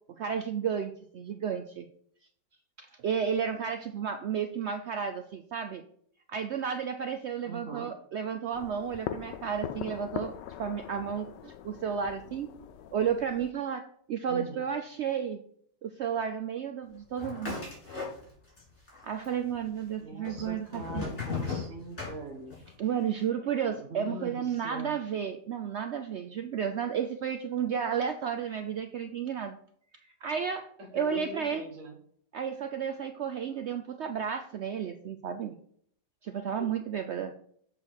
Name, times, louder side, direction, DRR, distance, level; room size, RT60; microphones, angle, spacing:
voice 1, 0.1-1.9 2.8-5.8 6.3-10.3 10.6-12.5 12.9-15.4 15.8-17.7 19.0-21.0 22.8-29.6 30.2-30.7 30.9-31.6 32.3-35.6 36.2-37.3, right 7 dB, 80° right, 7 dB, 0.6 m, -32 dB
voice 2, 7.4-7.9 14.3-14.7 20.0-22.5 23.8-25.0 30.8-32.0 36.6-36.7, right 1 dB, 50° right, 0 dB, 1.5 m, -42 dB
sound 1, 8.5-13.5, left 10 dB, 90° left, 1.2 m, -41 dB
sound 2, 17.2-18.6 18.9-19.6 20.2-22.7, left 4 dB, 40° left, 3.8 m, -36 dB
7.5 x 4.5 x 6.2 m, 0.64 s
omnidirectional pair, 1.8 m